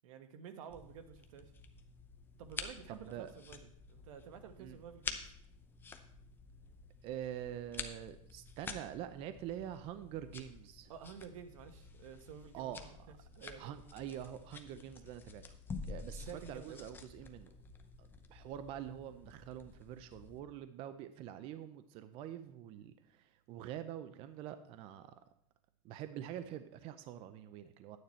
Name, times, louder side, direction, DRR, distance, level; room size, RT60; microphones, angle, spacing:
voice 1, 0.0-1.5 2.4-5.2 10.9-13.8 16.1-16.8, right 7 dB, 75° right, 9 dB, 1.2 m, -51 dB
sound 1, 0.7-20.4, left 4 dB, 10° left, 0.7 m, -49 dB
voice 2, 2.9-3.3 4.6-4.8 7.0-10.9 12.5-13.2 13.6-15.4 15.9-17.5 18.0-25.2 25.8-28.0, right 11 dB, 35° right, 11 dB, 0.5 m, -45 dB
10.5 x 9.4 x 4.3 m, 0.68 s
supercardioid pair, 160°, 17 cm